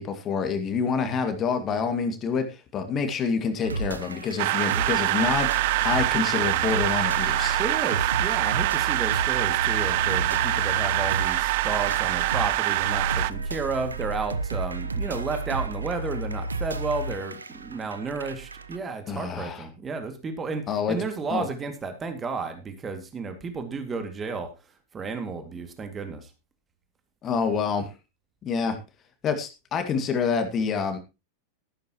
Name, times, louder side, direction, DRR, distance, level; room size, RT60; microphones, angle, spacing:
voice 1, 0.0-7.6 19.1-19.7 20.7-21.0 21.3-21.5 27.2-27.9 28.4-28.8 29.2-31.0, left 5 dB, 30° left, 7 dB, 2.2 m, -27 dB
sound 1, 3.6-18.8, right 3 dB, 75° right, 1.0 m, -32 dB
sound 2, 4.4-13.3, right 18 dB, 50° right, 0.5 m, -25 dB
voice 2, 7.6-24.5 24.9-26.3, right 4 dB, 20° right, 7 dB, 2.3 m, -32 dB
14.0 x 12.0 x 3.1 m, 0.27 s
figure-of-eight pair, 90°, 0 cm